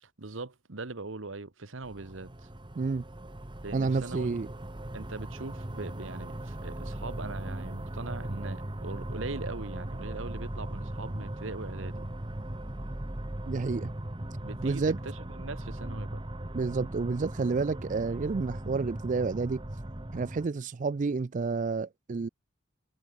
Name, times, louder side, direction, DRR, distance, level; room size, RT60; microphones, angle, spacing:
voice 1, 0.0-2.5 3.6-4.4 4.9-12.1 14.4-16.2, right 3 dB, 75° right, 1.3 m, -41 dB
sound 1, 1.8-20.5, right 1 dB, 25° right, 1.2 m, -38 dB
voice 2, 3.7-4.5 13.5-13.9 14.6-15.0 16.5-19.6 20.1-22.3, right 4 dB, 40° right, 0.4 m, -30 dB
head